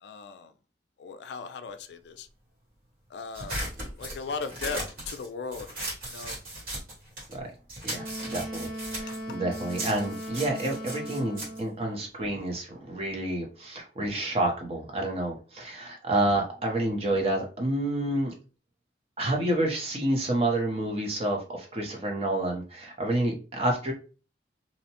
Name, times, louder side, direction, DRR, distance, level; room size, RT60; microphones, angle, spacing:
voice 1, 0.0-0.5 1.0-2.3 3.1-3.6 4.0-4.8 5.1-5.7 6.1-6.4, left 4 dB, 75° left, 0.3 m, -37 dB
sound 1, 3.3-7.4 7.7-12.5, right 1 dB, 50° right, 1.2 m, -37 dB
voice 2, 7.8-8.7 8.9-18.3 19.2-23.9, right 1 dB, 35° right, 0.6 m, -29 dB
Wind instrument woodwind instrument, 7.9-11.8, right 1 dB, 75° right, 1.2 m, -38 dB
2.7 x 2.1 x 2.8 m
head